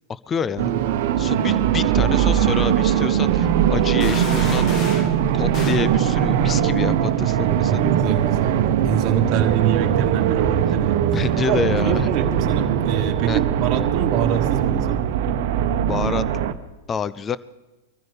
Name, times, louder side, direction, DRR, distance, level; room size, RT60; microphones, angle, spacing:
voice 1, 0.1-0.7 1.2-4.7 5.3-7.9 11.1-12.1 13.3-13.4 15.8-16.2 16.9-17.4, left 6 dB, 25° left, 17 dB, 0.5 m, -27 dB
sound 1, 0.6-16.5, right 9 dB, 60° right, 1.0 m, -20 dB
sound 2, 4.0-5.2 5.5-5.9, left 4 dB, 40° left, 2.0 m, -33 dB
voice 2, 7.4-8.6 8.8-11.0 11.5-15.0, right 9 dB, 40° right, 2 dB, 1.5 m, -26 dB
24.0 x 14.5 x 3.4 m, 1.1 s
hypercardioid pair, 105°, 0 cm